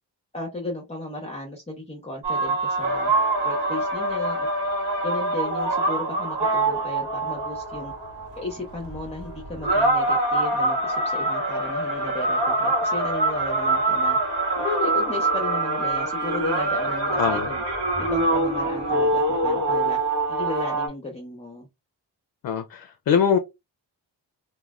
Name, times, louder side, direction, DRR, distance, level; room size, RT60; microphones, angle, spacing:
voice 1, 0.3-3.1 3.4-4.5 5.0-7.9 8.4-14.2 14.6-17.6 18.0-20.0 20.3-21.7, left 2 dB, 15° left, 0.6 m, -35 dB
sound 1, 2.2-20.9, right 2 dB, 70° right, 1.0 m, -24 dB
voice 2, 17.2-17.5 22.4-23.4, left 7 dB, 55° left, 0.5 m, -22 dB
3.0 x 2.2 x 2.3 m
cardioid pair, 85°, 42 cm